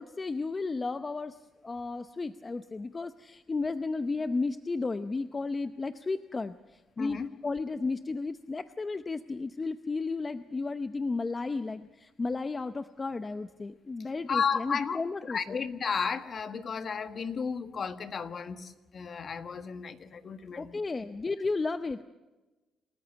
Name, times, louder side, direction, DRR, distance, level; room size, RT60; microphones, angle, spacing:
voice 1, 0.0-15.6 20.6-22.0, left 3 dB, 30° left, 11 dB, 0.7 m, -33 dB
voice 2, 7.0-7.3 14.3-20.8, left 6 dB, 50° left, 10 dB, 1.5 m, -33 dB
28.0 x 14.0 x 8.1 m, 1.1 s
cardioid pair, 90°, 0 cm